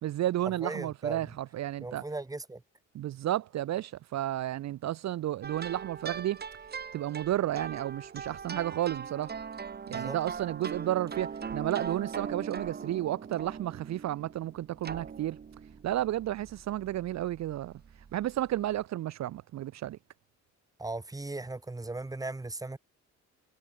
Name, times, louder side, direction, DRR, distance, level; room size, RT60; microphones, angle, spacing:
voice 1, 0.0-2.0 2.9-6.4 6.9-9.3 9.9-15.4 15.8-17.7 18.1-20.0, right 13 dB, 65° right, 0.7 m, -32 dB
voice 2, 0.6-1.4 1.8-2.6 9.9-10.2 20.8-22.8, right 2 dB, 10° right, 1.4 m, -38 dB
sound 1, 5.4-18.8, right 6 dB, 35° right, 1.3 m, -41 dB
cardioid pair, 90°, 30 cm